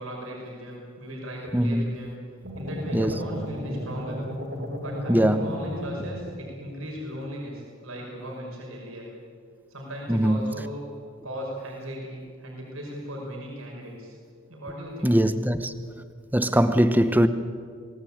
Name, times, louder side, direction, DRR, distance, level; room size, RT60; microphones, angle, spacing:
voice 1, 0.0-2.1 2.6-4.2 4.8-9.1 9.7-10.9 11.2-14.2 14.5-15.2, equal, 85° right, 5.8 m, -37 dB
voice 2, 1.5-2.1 2.9-3.1 5.1-5.5 10.1-10.5 15.0-15.7 16.3-17.3, equal, 10° right, 0.9 m, -21 dB
sound 1, 2.4-6.7, equal, 60° right, 4.0 m, -34 dB
24.0 x 19.0 x 8.8 m
head